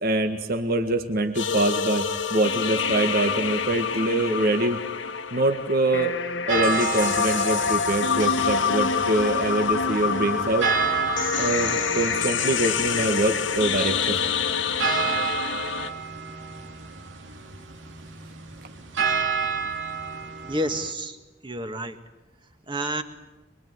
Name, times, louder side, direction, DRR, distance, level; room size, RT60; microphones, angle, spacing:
voice 1, 0.0-4.8 5.3-6.1 6.5-10.7 11.4-14.2, right 2 dB, 55° right, 6 dB, 1.9 m, -24 dB
sound 1, 1.3-15.9, left 6 dB, 80° left, 1.7 m, -26 dB
sound 2, 6.5-20.9, right 5 dB, 80° right, 2.6 m, -31 dB
voice 2, 20.5-21.2 21.4-22.0 22.7-23.0, right 1 dB, 25° right, 7 dB, 2.0 m, -29 dB
24.5 x 23.5 x 9.6 m, 1.1 s
head